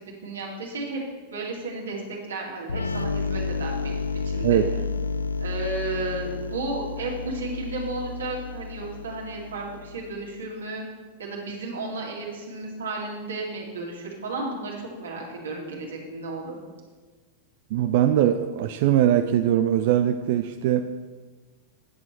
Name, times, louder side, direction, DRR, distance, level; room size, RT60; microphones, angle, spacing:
voice 1, 0.2-1.0 1.3-4.6 5.4-10.8 11.2-16.6, right 2 dB, 70° right, -2 dB, 2.3 m, -33 dB
sound 1, 2.7-10.3, left 4 dB, 80° left, 0.4 m, -31 dB
voice 2, 17.7-20.9, right 11 dB, 50° right, 9 dB, 0.4 m, -21 dB
10.0 x 7.5 x 4.6 m, 1.4 s
figure-of-eight pair, 90°, 0 cm